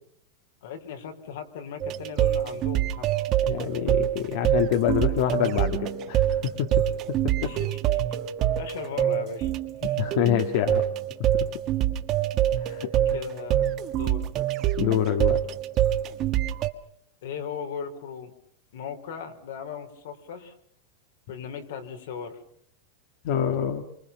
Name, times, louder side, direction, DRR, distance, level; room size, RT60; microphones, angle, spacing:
voice 1, 0.6-3.1 7.3-8.2 8.6-9.5 9.8-10.0 13.1-14.2 17.2-18.3 18.7-20.5 21.3-22.4, left 7 dB, 75° left, 5 dB, 4.6 m, -38 dB
sound 1, 1.8-16.7, right 11 dB, 30° right, 1.4 m, -25 dB
voice 2, 3.4-6.7 7.4-7.6 9.8-10.8 12.6-12.9 14.8-15.4 23.2-23.8, left 10 dB, 55° left, 7 dB, 1.8 m, -26 dB
27.5 x 25.0 x 5.8 m, 0.67 s
supercardioid pair, 160°, 0 cm